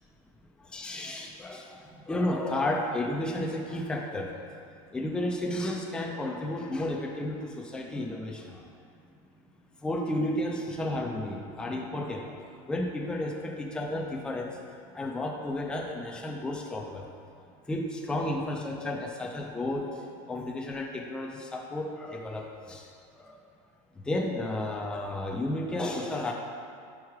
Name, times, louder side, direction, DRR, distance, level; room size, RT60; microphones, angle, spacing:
voice 1, 0.6-4.6 4.9-8.7 9.8-14.6 14.9-17.1 17.7-22.9 23.2-23.4 23.9-26.3, left 1 dB, 5° left, 0 dB, 0.3 m, -32 dB
4.7 x 4.6 x 4.6 m, 2.5 s
cardioid pair, 165°, 17 cm